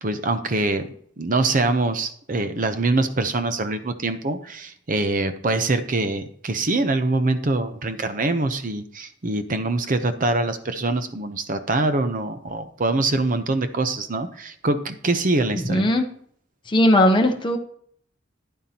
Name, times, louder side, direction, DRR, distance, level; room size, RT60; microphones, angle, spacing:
voice 1, 0.0-15.9, right 2 dB, 40° right, 10 dB, 0.7 m, -24 dB
voice 2, 15.5-16.1 16.7-17.6, left 1 dB, 25° left, 4 dB, 0.9 m, -18 dB
10.0 x 9.1 x 2.9 m, 0.63 s
head